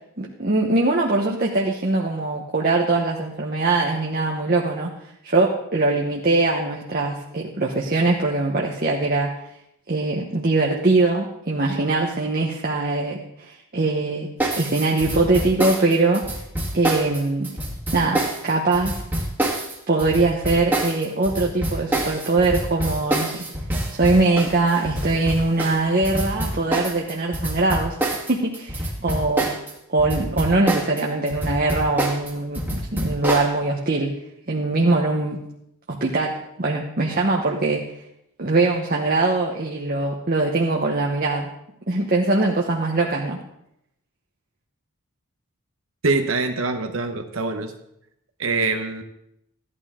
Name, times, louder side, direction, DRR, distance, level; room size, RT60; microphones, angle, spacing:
voice 1, 0.2-4.9 5.2-9.3 9.9-14.3 14.6-16.3 16.7-17.5 17.9-19.0 19.9-23.4 24.0-28.0 28.3-29.5 29.9-34.1 34.5-35.4 35.9-37.8 38.4-41.5 41.9-43.4, right 2 dB, 40° right, -1 dB, 1.1 m, -22 dB
sound 1, 14.4-29.7 30.0-33.5, right 1 dB, 10° right, 1.8 m, -26 dB
voice 2, 46.0-47.7 48.4-49.0, right 3 dB, 65° right, 6 dB, 1.0 m, -24 dB
14.5 x 11.0 x 3.7 m, 0.79 s
head